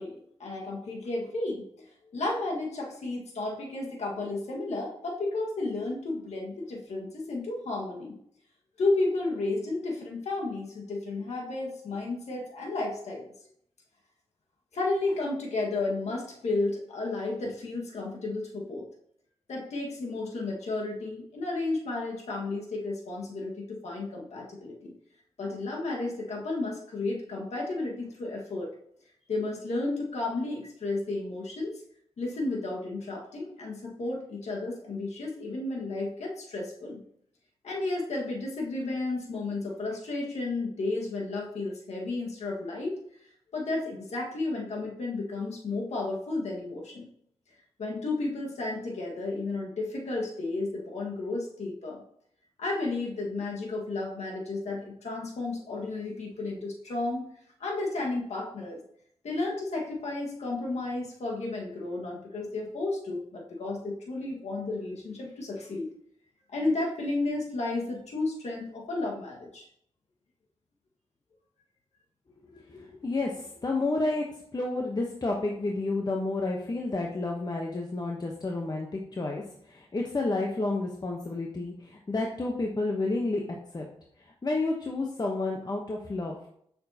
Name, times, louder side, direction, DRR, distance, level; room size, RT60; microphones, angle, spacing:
voice 1, 0.0-1.7 2.1-8.2 8.8-13.3 14.7-18.8 19.5-24.9 25.4-28.7 29.3-31.8 32.2-37.0 37.6-43.0 43.5-47.1 47.8-52.0 52.6-57.3 57.6-58.8 59.2-65.9 66.5-69.7, left 2 dB, 70° left, -2 dB, 1.7 m, -32 dB
voice 2, 72.5-74.2 74.5-83.4 83.7-83.9 84.4-86.5, left 2 dB, 35° left, 0 dB, 1.0 m, -30 dB
6.9 x 6.3 x 2.9 m, 0.68 s
cardioid pair, 60°, 12 cm